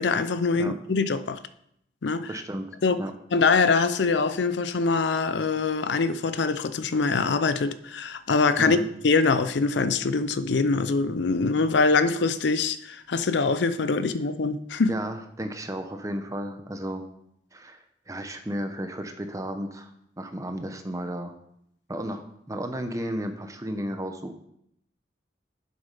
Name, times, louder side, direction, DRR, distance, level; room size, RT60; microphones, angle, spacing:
voice 1, 0.0-1.4 2.0-2.3 2.8-3.0 3.3-8.8 9.0-14.9, left 4 dB, 75° left, 13 dB, 0.5 m, -24 dB
voice 2, 2.3-2.7 3.0-3.1 8.6-8.9 14.9-17.1 17.5-21.3 21.9-24.4, equal, 20° right, 7 dB, 0.8 m, -33 dB
7.4 x 6.9 x 5.4 m, 0.74 s
head